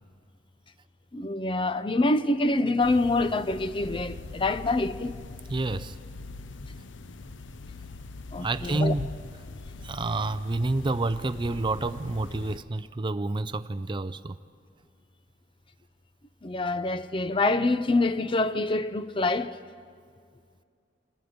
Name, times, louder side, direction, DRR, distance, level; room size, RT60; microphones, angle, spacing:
voice 1, 1.1-5.2 8.3-8.9 16.4-19.6, left 2 dB, 30° left, 0.6 m, -26 dB
Interior car parked on the street, 2.8-12.6, left 3 dB, 80° left, 0.7 m, -42 dB
voice 2, 5.5-6.0 8.4-9.1 9.8-14.4, right 2 dB, 25° right, 0.5 m, -29 dB
27.5 x 22.5 x 5.2 m
head